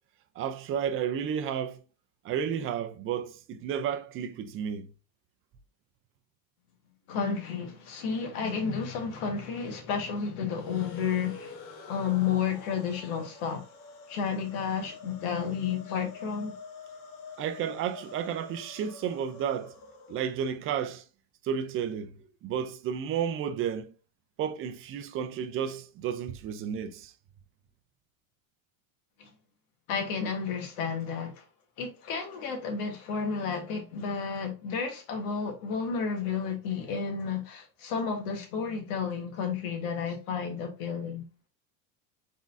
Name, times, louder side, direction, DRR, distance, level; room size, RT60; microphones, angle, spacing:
voice 1, 0.4-1.8 2.2-4.9 17.4-19.8 20.1-21.0 21.4-22.2 22.4-23.9 24.4-27.1, right 8 dB, 30° right, 0.5 m, -32 dB
voice 2, 7.1-11.6 11.9-13.6 14.1-16.5 29.2-29.3 29.9-31.4 31.8-41.2, left 6 dB, 80° left, 1.6 m, -31 dB
sound 1, 10.5-20.7, left 4 dB, 60° left, 1.3 m, -48 dB
3.9 x 3.7 x 2.6 m
supercardioid pair, 135°, 42 cm